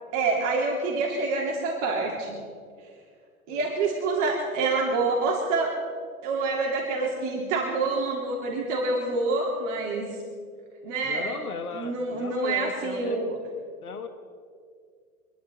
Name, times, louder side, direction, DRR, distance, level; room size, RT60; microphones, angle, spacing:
voice 1, 0.1-2.4 3.5-5.8 6.2-10.2 10.8-11.4 11.7-13.4, right 3 dB, 55° right, -2 dB, 3.0 m, -27 dB
voice 2, 11.0-13.2 13.8-14.1, left 5 dB, 85° left, 8 dB, 1.4 m, -36 dB
25.5 x 11.0 x 4.1 m, 2.1 s
hypercardioid pair, 95°, 43 cm